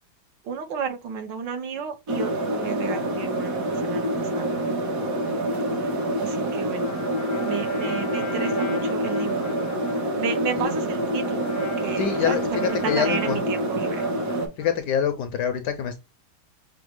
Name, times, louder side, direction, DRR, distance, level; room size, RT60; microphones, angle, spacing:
voice 1, 0.4-4.5 5.8-5.9 6.2-6.9 7.4-9.5 10.1-14.1, right 6 dB, 65° right, 1.5 m, -32 dB
sound 1, 2.1-14.5, right 1 dB, 50° right, 1.3 m, -26 dB
Trumpet, 6.7-14.9, left 4 dB, 50° left, 0.7 m, -40 dB
voice 2, 12.0-13.4 14.6-16.0, left 8 dB, 75° left, 1.0 m, -25 dB
6.0 x 2.1 x 3.0 m
omnidirectional pair, 2.2 m